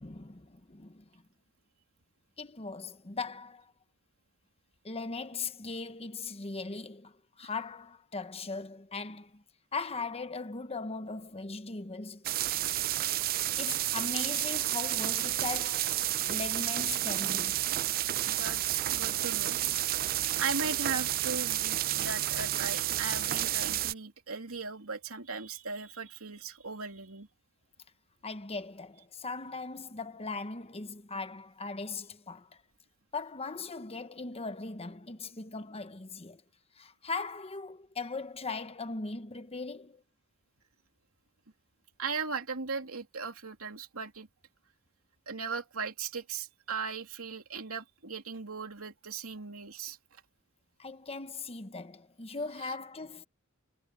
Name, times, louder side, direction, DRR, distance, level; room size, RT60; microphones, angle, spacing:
voice 1, 0.0-1.2 2.4-3.7 4.8-9.4 9.7-12.6 13.6-16.0 16.3-17.7 20.3-20.4 28.2-32.6 33.1-36.4 36.8-40.0 50.8-53.2, left 3 dB, 30° left, 1.1 m, -39 dB
sound 1, 12.2-23.9, right 14 dB, 45° right, 0.4 m, -31 dB
voice 2, 18.3-19.6 20.4-27.3 42.0-44.3 45.3-50.0 52.6-52.7, right 5 dB, 80° right, 3.1 m, -38 dB
head